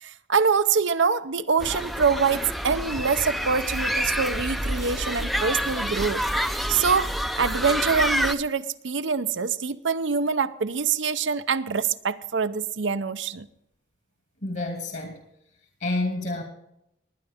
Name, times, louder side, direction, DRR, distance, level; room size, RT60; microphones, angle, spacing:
voice 1, 0.0-13.5, right 5 dB, 85° right, 0.7 m, -25 dB
sound 1, 1.6-8.3, equal, ahead, 0.5 m, -28 dB
voice 2, 14.4-15.2 15.8-16.4, left 2 dB, 55° left, 2.4 m, -28 dB
20.0 x 10.0 x 3.6 m
head